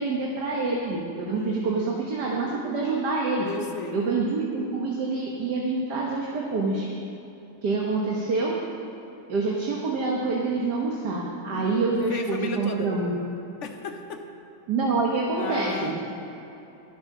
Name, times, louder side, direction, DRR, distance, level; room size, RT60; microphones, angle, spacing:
voice 1, 0.0-3.5 3.9-6.9 7.6-8.6 9.3-13.1 14.7-16.0, right 3 dB, 70° right, -2 dB, 1.9 m, -26 dB
voice 2, 1.3-2.1 3.4-4.0 11.5-13.0 13.6-14.3 15.4-16.0, left 4 dB, 50° left, 4 dB, 1.1 m, -35 dB
12.0 x 11.0 x 6.0 m, 3.0 s
omnidirectional pair, 1.9 m